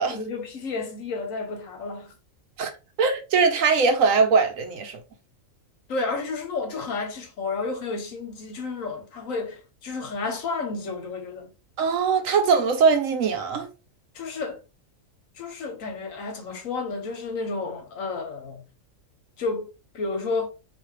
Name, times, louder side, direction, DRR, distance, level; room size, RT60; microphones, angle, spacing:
voice 1, 0.1-2.1 5.9-11.5 14.1-14.6 15.4-18.6 19.4-20.5, left 3 dB, 75° left, 1.4 m, -31 dB
voice 2, 3.0-5.0 11.8-13.7, right 5 dB, 80° right, 1.2 m, -21 dB
4.2 x 2.9 x 3.3 m
omnidirectional pair, 1.4 m